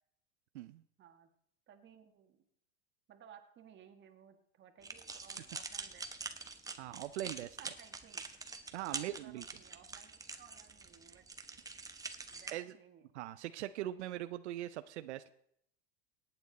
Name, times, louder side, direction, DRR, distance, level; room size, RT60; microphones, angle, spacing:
voice 1, 1.0-1.3 1.7-2.4 3.1-6.4 7.2-8.3 8.8-11.3 12.3-13.2, right 8 dB, 35° right, 6 dB, 1.8 m, -59 dB
sound 1, 4.8-12.5, right 4 dB, 10° right, 1.0 m, -45 dB
voice 2, 6.8-7.5 8.7-9.4 12.5-12.7 13.1-15.3, right 13 dB, 85° right, 12 dB, 0.6 m, -41 dB
18.0 x 9.0 x 4.0 m, 0.70 s
supercardioid pair, 115°, 34 cm